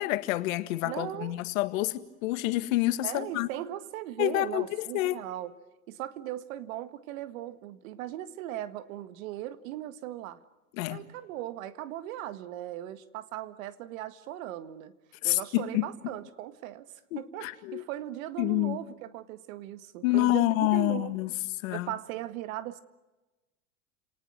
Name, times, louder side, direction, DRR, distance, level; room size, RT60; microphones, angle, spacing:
voice 1, 0.0-3.5 4.2-4.7 4.9-5.2 10.8-11.0 15.2-15.9 17.1-17.8 18.4-18.8 20.0-21.3 21.6-21.9, left 17 dB, 70° left, 1.9 m, -28 dB
voice 2, 0.8-1.4 3.0-5.6 5.9-10.4 10.9-14.9 15.2-16.9 17.2-21.2 21.7-22.8, right 13 dB, 70° right, 1.8 m, -38 dB
29.5 x 19.0 x 9.3 m
hypercardioid pair, 100°, 42 cm